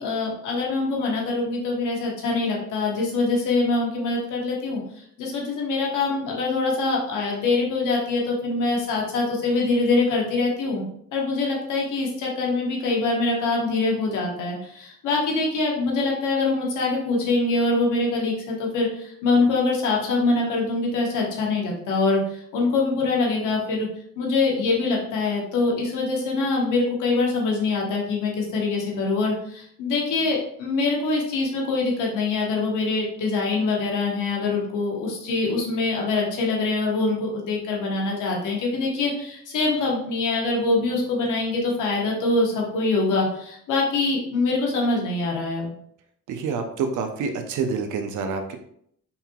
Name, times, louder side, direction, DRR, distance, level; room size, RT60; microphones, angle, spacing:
voice 1, 0.0-10.8 11.1-23.9 24.2-45.7, left 3 dB, 85° left, -2 dB, 1.2 m, -24 dB
voice 2, 46.3-48.6, right 5 dB, 80° right, 5 dB, 0.6 m, -27 dB
5.5 x 2.9 x 2.3 m, 0.68 s
cardioid pair, 90°, 30 cm